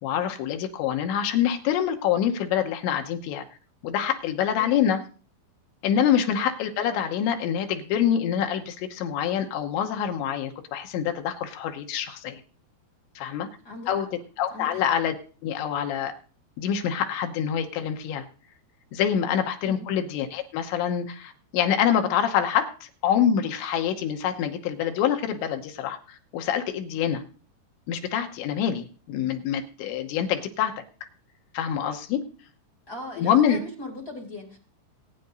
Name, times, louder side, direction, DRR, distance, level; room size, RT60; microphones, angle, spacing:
voice 1, 0.0-3.4 3.8-5.0 5.8-12.4 13.2-13.5 13.9-14.1 14.4-15.2 15.4-16.2 16.6-18.3 18.9-27.2 27.9-30.8 31.5-32.2 33.2-33.6, left 9 dB, 80° left, 5 dB, 3.1 m, -26 dB
voice 2, 4.4-4.9 13.6-14.1 14.5-14.8 19.6-19.9 32.9-34.6, left 1 dB, 25° left, 0 dB, 2.4 m, -39 dB
24.0 x 9.1 x 2.6 m, 0.39 s
omnidirectional pair, 5.6 m